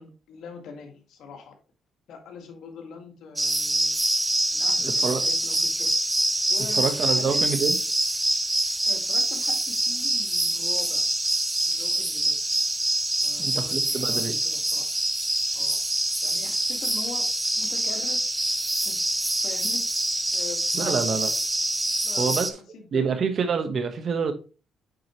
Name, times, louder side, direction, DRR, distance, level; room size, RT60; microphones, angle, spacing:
voice 1, 0.0-1.5 2.1-4.0 4.5-5.9 6.5-7.5 8.9-11.0 11.7-12.4 13.2-14.9 15.5-15.8 16.2-17.3 17.5-18.2 18.8-19.0 19.4-19.8 20.3-21.3 22.0-22.5 22.7-23.1, left 5 dB, 75° left, 4 dB, 1.7 m, -42 dB
sound 1, 3.4-22.5, right 1 dB, 10° right, 0.6 m, -25 dB
voice 2, 4.8-5.2 6.8-7.8 13.4-14.3 20.7-21.3 22.2-22.5 22.9-24.3, right 6 dB, 55° right, 8 dB, 1.2 m, -26 dB
8.8 x 4.8 x 3.0 m, 0.34 s
cardioid pair, 90°, 0 cm